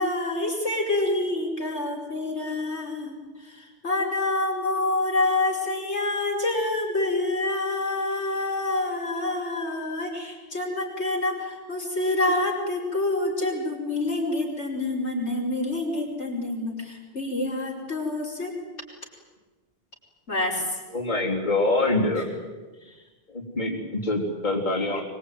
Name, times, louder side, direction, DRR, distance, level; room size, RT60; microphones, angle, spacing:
voice 1, 0.0-3.2 3.8-18.5 20.3-20.6, left 2 dB, 90° left, -1 dB, 5.5 m, -27 dB
voice 2, 20.9-22.3 23.3-25.0, left 2 dB, 40° left, -3 dB, 3.9 m, -25 dB
24.5 x 21.5 x 9.3 m, 1.3 s
omnidirectional pair, 1.1 m